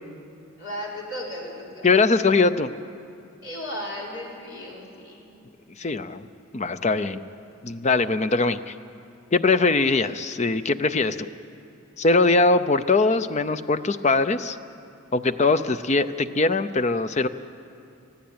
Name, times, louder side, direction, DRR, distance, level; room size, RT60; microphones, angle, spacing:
voice 1, 0.6-1.9 3.4-5.2, equal, 60° left, -4 dB, 4.8 m, -35 dB
voice 2, 1.8-2.7 5.8-6.3 6.5-7.2 7.6-8.7 9.3-11.3 12.0-14.6 15.1-17.3, left 3 dB, 30° left, 12 dB, 0.5 m, -21 dB
20.5 x 15.0 x 8.7 m, 2.6 s
head